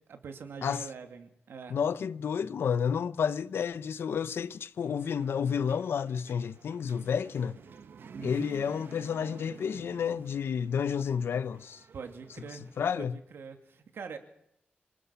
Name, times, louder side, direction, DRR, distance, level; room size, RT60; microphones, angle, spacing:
voice 1, 0.1-1.8 8.1-8.5 11.9-12.7 13.0-14.2, right 5 dB, 85° right, 2.5 m, -43 dB
voice 2, 1.7-7.6 8.2-11.8 12.8-13.2, left 7 dB, 85° left, 0.8 m, -30 dB
sound 1, 4.8-12.9, right 6 dB, 65° right, 1.1 m, -52 dB
27.0 x 19.5 x 5.8 m
wide cardioid pair, 175°, 4 cm